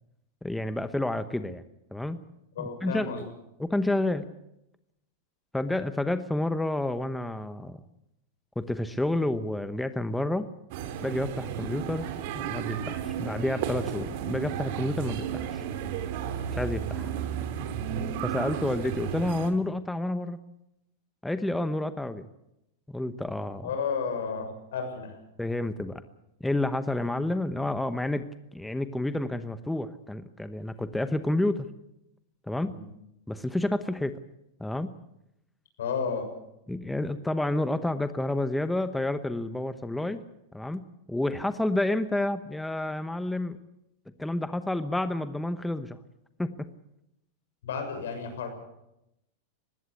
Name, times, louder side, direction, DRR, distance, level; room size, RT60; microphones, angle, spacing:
voice 1, 0.4-1.6 1.9-2.2 2.6-3.3 3.6-4.3 5.5-7.8 8.6-10.5 11.0-12.1 12.3-15.6 16.5-17.1 18.2-20.4 21.2-22.3 22.9-23.7 25.4-26.0 26.4-28.2 28.5-31.7 32.5-32.7 33.3-34.1 34.6-34.9 36.7-40.2 40.5-40.8 41.1-43.6 44.2-46.0 46.4-46.7, left 1 dB, 5° left, 11 dB, 1.0 m, -29 dB
voice 2, 2.5-3.2 23.6-25.2 32.7-32.9 35.8-36.3 47.6-48.5, left 5 dB, 85° left, 6 dB, 6.6 m, -32 dB
sound 1, 10.7-19.5, right 8 dB, 60° right, 2.7 m, -33 dB
20.0 x 16.0 x 8.6 m, 0.86 s
supercardioid pair, 130°, 0 cm